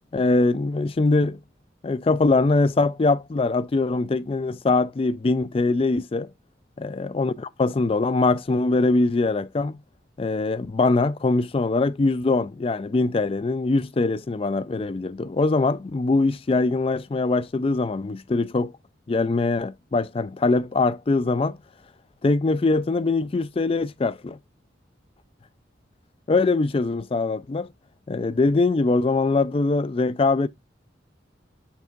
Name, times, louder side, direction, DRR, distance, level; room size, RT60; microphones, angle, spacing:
voice 1, 0.1-1.4 1.8-6.3 6.8-9.8 10.2-18.7 19.1-21.6 22.2-24.4 26.3-27.7 28.1-30.5, left 3 dB, 30° left, 0.3 m, -22 dB
5.9 x 3.3 x 5.2 m
head